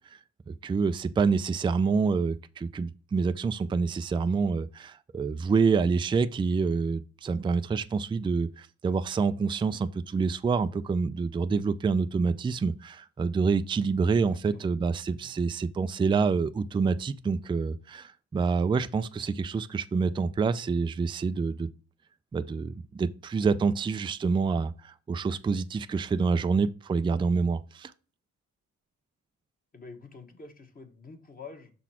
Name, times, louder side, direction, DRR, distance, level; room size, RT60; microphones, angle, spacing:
voice 1, 0.5-21.7 22.3-27.9, right 5 dB, 15° right, 0.4 m, -27 dB
voice 2, 14.1-14.7 15.2-15.3 29.7-31.7, left 4 dB, 30° left, 1.3 m, -47 dB
5.9 x 4.1 x 4.3 m
cardioid pair, 90°, 30 cm